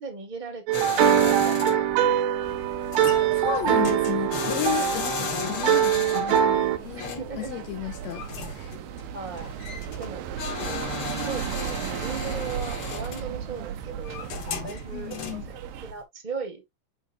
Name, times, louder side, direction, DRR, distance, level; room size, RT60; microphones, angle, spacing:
voice 1, 0.0-2.2 7.0-7.5 9.1-9.5 10.0-10.2 11.2-14.3 14.6-15.4 15.8-16.6, right 4 dB, 25° right, 1.0 m, -37 dB
sound 1, 0.7-16.0, left 6 dB, 55° left, 1.7 m, -36 dB
sound 2, 0.7-6.8, right 9 dB, 70° right, 1.9 m, -23 dB
sound 3, 2.4-15.9, right 10 dB, 85° right, 2.5 m, -36 dB
voice 2, 3.3-6.5 6.8-8.8 14.9-15.5, left 14 dB, 85° left, 1.5 m, -33 dB
8.2 x 5.0 x 2.6 m
omnidirectional pair, 3.9 m